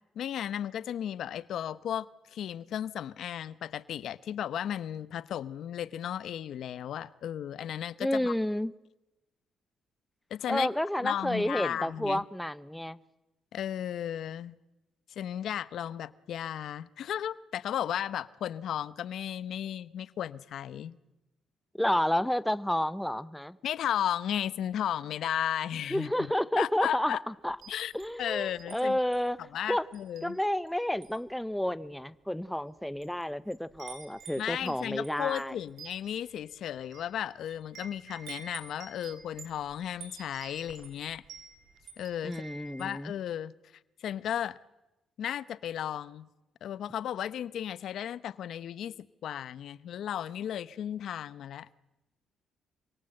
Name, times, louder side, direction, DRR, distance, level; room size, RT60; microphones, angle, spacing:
voice 1, 0.2-8.3 10.3-10.7 11.0-12.2 13.5-14.5 15.2-21.0 23.6-26.1 26.6-27.2 27.7-27.9 28.2-29.0 29.5-30.4 34.4-41.2 42.0-42.4 42.8-43.5 44.0-44.6 45.2-46.3 46.6-51.7, left 10 dB, 70° left, 0.9 m, -34 dB
voice 2, 8.0-8.7 10.5-13.0 21.8-23.6 25.9-27.6 27.9-29.9 30.2-35.5 42.2-43.1, left 1 dB, 5° left, 0.9 m, -30 dB
Wind chime, 27.5-28.8 29.1-29.4 29.9-30.7 31.0-31.3 32.0-32.1 32.8-33.2 33.5-43.0, right 5 dB, 70° right, 7.0 m, -49 dB
27.0 x 24.0 x 7.8 m
cardioid pair, 90°, 0 cm